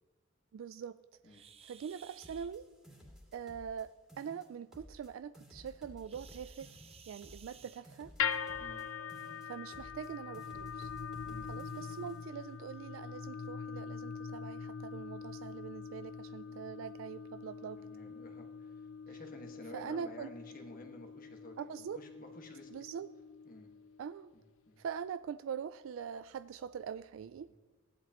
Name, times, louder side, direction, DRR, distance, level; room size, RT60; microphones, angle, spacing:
voice 1, 0.5-1.0 1.2-2.7 3.3-6.7 7.1-8.1 9.4-10.9 11.5-17.8 19.7-20.3 21.6-22.0 22.7-23.1 24.0-24.3 24.8-27.5, right 7 dB, 85° right, 14 dB, 0.3 m, -43 dB
sound 1, 1.3-2.5 6.0-8.3 9.5-9.7 10.2-10.3 10.9-11.0 11.8-11.9 12.4-12.6, right 7 dB, 30° right, 0.6 m, -58 dB
sound 2, 2.2-3.8 4.1-5.1 5.3-8.8 9.1-10.1 10.3-12.2, equal, ahead, 2.5 m, -55 dB
sound 3, 8.2-24.4, left 6 dB, 90° left, 0.5 m, -43 dB
voice 2, 17.8-22.7 23.4-23.8 24.6-24.8, left 1 dB, 45° left, 2 dB, 1.6 m, -52 dB
16.0 x 11.0 x 3.0 m, 1.3 s
head